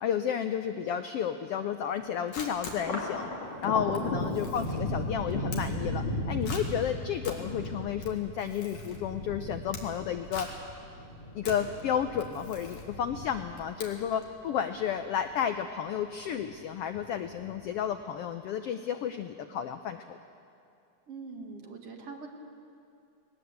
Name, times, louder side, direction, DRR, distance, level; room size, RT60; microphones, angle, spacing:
voice 1, 0.0-3.3 3.6-10.5 11.3-20.2, left 9 dB, 80° left, 8 dB, 1.3 m, -32 dB
Camera, 2.0-14.4, left 4 dB, 65° left, 3.3 m, -45 dB
Thunder, 2.7-15.4 15.8-16.6 16.9-17.8, left 1 dB, 45° left, 3.5 m, -36 dB
voice 2, 3.9-4.4 21.1-22.3, right 4 dB, 55° right, 2 dB, 2.5 m, -43 dB
19.5 x 19.0 x 8.1 m, 2.5 s
omnidirectional pair, 3.5 m